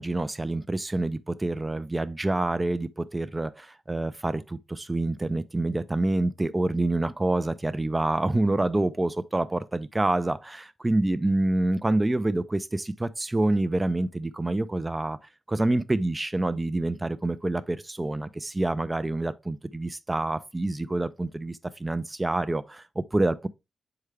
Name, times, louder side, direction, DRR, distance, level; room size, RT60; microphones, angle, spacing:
voice 1, 0.0-15.2 15.5-23.5, right 2 dB, 15° right, 0.4 m, -27 dB
6.6 x 4.8 x 3.3 m
wide cardioid pair, 150°, 0 cm